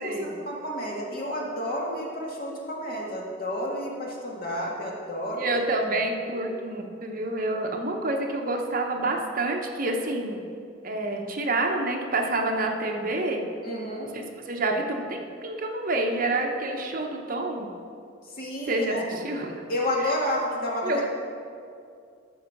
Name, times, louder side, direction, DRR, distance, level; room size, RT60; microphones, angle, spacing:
voice 1, 0.0-5.5 13.6-14.1 18.4-19.0 19.7-21.1, left 1 dB, 55° left, -3 dB, 2.0 m, -30 dB
voice 2, 5.4-10.4 10.8-13.4 14.1-17.7 18.7-19.5 20.0-20.1 20.8-21.1, right 2 dB, 50° right, 2 dB, 1.0 m, -28 dB
12.5 x 4.7 x 6.0 m, 2.4 s
head